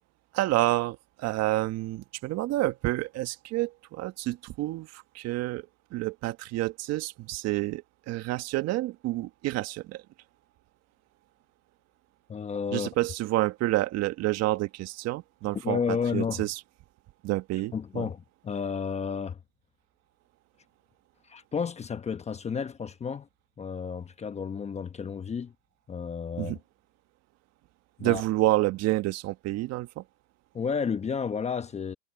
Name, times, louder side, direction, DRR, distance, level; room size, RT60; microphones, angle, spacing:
voice 1, 0.3-10.0 12.7-16.6 17.2-18.1 26.4-26.6 28.0-30.0, right 17 dB, 40° right, 1.6 m, -29 dB
voice 2, 12.3-12.9 15.6-16.4 17.7-19.4 21.3-23.3 23.6-25.5 25.9-26.5 28.0-28.2 30.5-31.9, left 6 dB, 15° left, 1.1 m, -31 dB
hypercardioid pair, 120°, 40 cm